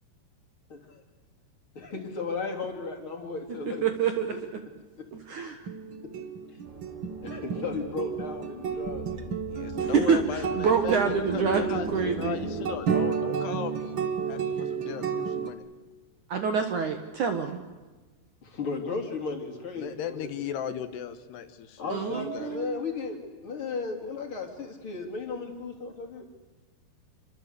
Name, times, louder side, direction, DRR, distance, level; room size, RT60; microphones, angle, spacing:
voice 1, 0.7-1.0 1.8-3.9 4.3-4.4 5.0-5.1 5.3-5.5 6.0-6.1 7.2-9.3 18.4-20.3 21.8-26.3, left 4 dB, 30° left, 3 dB, 3.7 m, -35 dB
voice 2, 3.8-4.3 5.1-5.6 9.8-12.4 16.3-17.6 21.9-22.8, right 6 dB, 60° right, 7 dB, 2.3 m, -27 dB
sound 1, 5.7-15.5, right 6 dB, 85° right, 1.1 m, -32 dB
sound 2, 6.6-12.8, right 2 dB, 40° right, 7.1 m, -40 dB
voice 3, 9.5-14.0 14.3-15.6 19.7-22.6, left 9 dB, 75° left, 10 dB, 3.2 m, -37 dB
27.5 x 24.5 x 8.3 m, 1.3 s
omnidirectional pair, 5.1 m